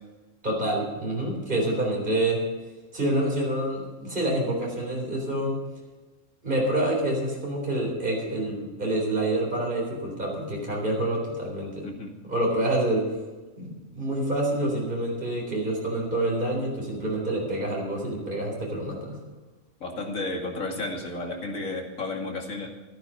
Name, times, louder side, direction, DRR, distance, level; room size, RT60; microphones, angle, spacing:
voice 1, 0.4-2.4 2.9-5.6 6.4-11.8 12.2-13.1 13.6-19.2, right 1 dB, 40° right, -2 dB, 4.1 m, -27 dB
voice 2, 19.8-22.7, left 2 dB, 90° left, 1 dB, 2.7 m, -32 dB
13.5 x 12.5 x 5.7 m, 1.3 s
omnidirectional pair, 1.4 m